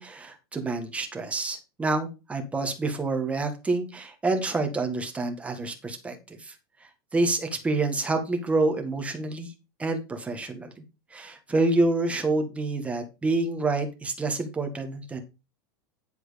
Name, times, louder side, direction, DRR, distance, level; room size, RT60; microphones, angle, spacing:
voice 1, 0.0-6.5 7.1-9.5 9.8-10.7 11.1-15.2, right 2 dB, 10° right, 5 dB, 1.7 m, -27 dB
10.5 x 4.6 x 5.2 m, 0.28 s
supercardioid pair, 145°, 11 cm